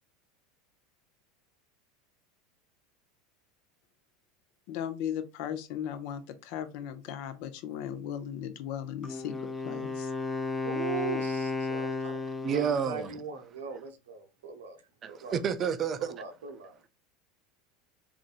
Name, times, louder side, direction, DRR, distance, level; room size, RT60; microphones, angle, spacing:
voice 1, 4.7-10.1, left 9 dB, 65° left, 0.5 m, -37 dB
Wind instrument woodwind instrument, 9.0-12.9, left 3 dB, 10° left, 0.6 m, -33 dB
voice 2, 10.5-12.1 12.5-14.8 15.1-15.3 16.0-16.8, right 5 dB, 80° right, 0.6 m, -39 dB
voice 3, 12.4-13.2 15.0-16.1, right 7 dB, 40° right, 0.4 m, -30 dB
3.7 x 2.5 x 2.4 m
hypercardioid pair, 90°, 0 cm